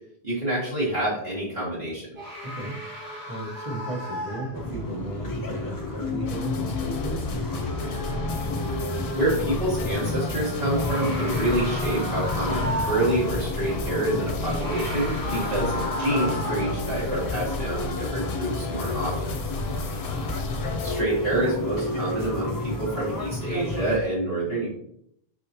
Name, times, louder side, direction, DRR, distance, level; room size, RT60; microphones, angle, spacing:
voice 1, 0.2-2.1 8.9-19.4 20.8-24.7, right 1 dB, 55° right, -9 dB, 1.5 m, -27 dB
sound 1, 2.2-4.9 9.2-9.3 10.6-13.2 14.4-16.8, equal, 90° right, 2.2 m, -34 dB
voice 2, 2.4-2.8 3.2-7.2 19.7-20.0, right 2 dB, 35° right, -2 dB, 1.2 m, -35 dB
sound 2, 4.5-24.0, left 2 dB, 35° left, 0.3 m, -31 dB
sound 3, 6.2-21.0, left 3 dB, 65° left, 0.8 m, -33 dB
4.2 x 3.7 x 2.8 m, 0.71 s
omnidirectional pair, 1.0 m